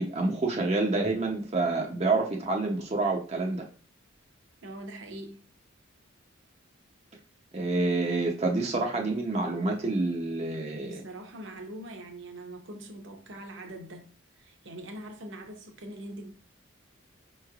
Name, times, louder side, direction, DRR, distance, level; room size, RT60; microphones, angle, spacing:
voice 1, 0.0-3.6 7.5-11.0, right 3 dB, 30° right, 0.6 m, -28 dB
voice 2, 4.6-5.4 10.7-14.1 14.4-16.3, right 1 dB, 60° right, 0.8 m, -43 dB
5.2 x 3.1 x 2.4 m
head